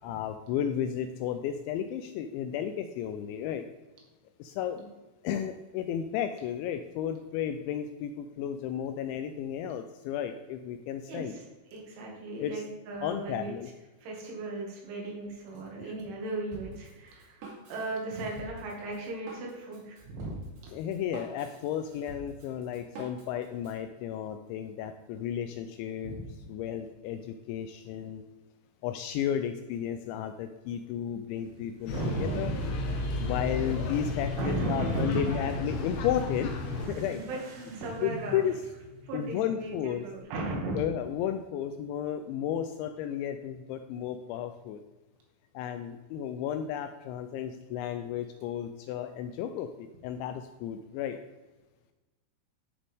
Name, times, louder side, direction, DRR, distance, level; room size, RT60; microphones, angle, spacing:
voice 1, 0.0-3.7 4.4-4.8 5.2-11.3 12.4-12.6 13.0-13.7 15.8-15.9 20.7-26.1 26.5-28.2 28.8-32.5 33.2-36.6 36.9-37.2 38.0-38.5 39.1-40.1 40.7-44.8 45.5-51.2, left 9 dB, 85° left, 7 dB, 2.7 m, -33 dB
voice 2, 11.1-11.4 11.7-13.5 14.0-20.3 20.6-20.7 26.0-26.3 31.9-32.8 34.4-35.5 37.2-37.4 37.7-38.4 39.0-40.8, right 2 dB, 75° right, -2 dB, 4.6 m, -36 dB
Drum kit, 16.5-23.8, right 2 dB, 60° right, 4.2 m, -47 dB
Motorcycle / Accelerating revving vroom, 31.3-40.2, equal, 90° right, 4.7 m, -47 dB
sound 1, 31.9-36.9, left 2 dB, 65° left, 2.8 m, -33 dB
13.0 x 6.8 x 3.6 m, 1.1 s
omnidirectional pair, 5.6 m